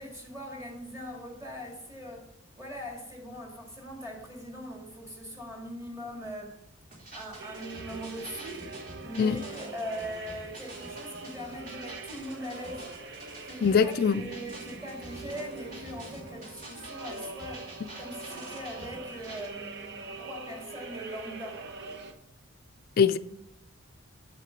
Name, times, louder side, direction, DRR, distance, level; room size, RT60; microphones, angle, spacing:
voice 1, 0.0-6.6 7.1-8.7 9.0-13.0 13.4-21.6, equal, 15° right, 1.9 m, -41 dB
sound 1, 6.9-19.5, right 1 dB, 45° right, 2.7 m, -47 dB
sound 2, 7.4-22.1, right 3 dB, 60° right, 0.9 m, -43 dB
voice 2, 13.6-14.2 23.0-23.2, left 6 dB, 50° left, 0.4 m, -22 dB
7.8 x 7.5 x 4.5 m
head